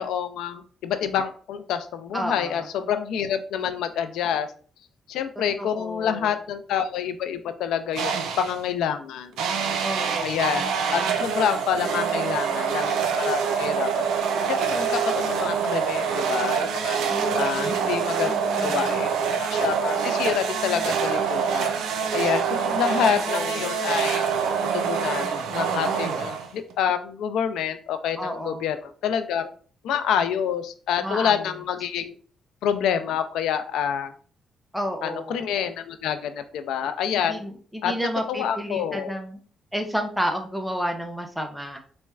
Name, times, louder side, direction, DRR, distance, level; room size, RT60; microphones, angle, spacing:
voice 1, 0.0-4.5 5.1-9.3 10.2-13.9 14.5-17.0 17.4-21.7 22.1-24.3 24.7-29.5 29.8-32.2 32.6-34.1 35.0-37.4 37.8-39.1, left 8 dB, 85° left, 9 dB, 0.3 m, -27 dB
voice 2, 2.1-2.7 5.6-6.3 9.8-10.5 17.1-17.9 18.2-19.0 23.2-23.7 28.2-28.6 31.0-31.4 34.7-35.4 37.2-39.4 39.7-41.8, equal, ahead, 4 dB, 0.4 m, -31 dB
sound 1, 8.0-8.6 9.4-26.7, right 6 dB, 85° right, 0.4 m, -25 dB
4.1 x 2.1 x 2.3 m, 0.43 s
cardioid pair, 90°, 0 cm